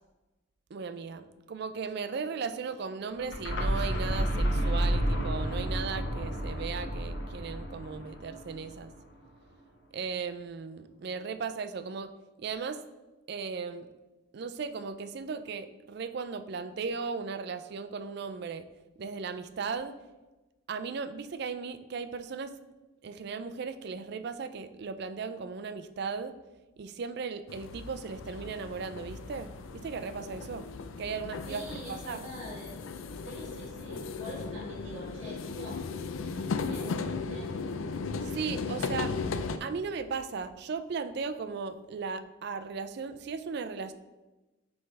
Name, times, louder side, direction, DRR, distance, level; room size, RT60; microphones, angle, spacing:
voice 1, 0.7-8.9 9.9-12.1 12.4-12.8 13.3-13.9 14.3-18.7 19.0-19.9 20.7-22.5 23.0-26.3 26.8-29.5 29.8-30.7 31.0-32.3 38.2-39.1 39.6-43.9, right 5 dB, 55° right, 10 dB, 0.4 m, -36 dB
sound 1, 3.1-8.9, equal, 60° left, 1.0 m, -31 dB
sound 2, 27.5-39.6, left 4 dB, 80° left, 0.4 m, -36 dB
voice 2, 31.5-32.7 33.2-37.5, equal, 30° right, -7 dB, 1.9 m, -45 dB
9.5 x 3.4 x 3.2 m, 1.1 s
head